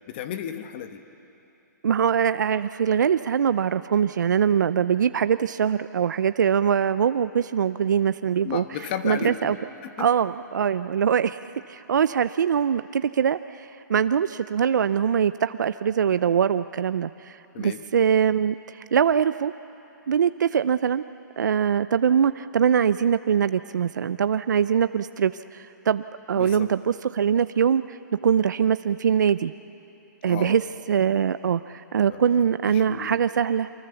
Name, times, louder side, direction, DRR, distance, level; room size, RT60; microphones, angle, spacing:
voice 1, 0.1-1.0 8.4-10.1 17.5-17.8 26.3-26.7 30.2-30.6 32.1-33.2, left 9 dB, 35° left, 8 dB, 1.3 m, -34 dB
voice 2, 1.8-8.6 9.0-9.5 10.0-11.4 11.7-19.5 20.1-21.0 21.4-29.5 30.2-30.6 30.9-33.7, right 7 dB, 70° right, 13 dB, 0.6 m, -23 dB
28.0 x 24.0 x 7.0 m, 2.9 s
hypercardioid pair, 155°, 10 cm